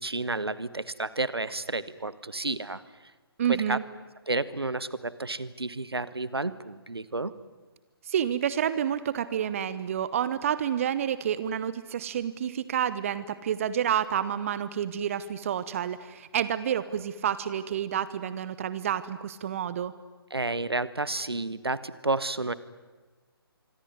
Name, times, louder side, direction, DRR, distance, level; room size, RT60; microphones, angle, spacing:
voice 1, 0.0-2.8 3.5-3.8 4.3-7.3 20.3-22.5, right 2 dB, 75° right, 16 dB, 1.5 m, -31 dB
voice 2, 3.4-3.8 8.0-19.9, right 9 dB, 35° right, 15 dB, 1.0 m, -29 dB
25.5 x 23.5 x 9.7 m, 1.3 s
figure-of-eight pair, 140°, 13 cm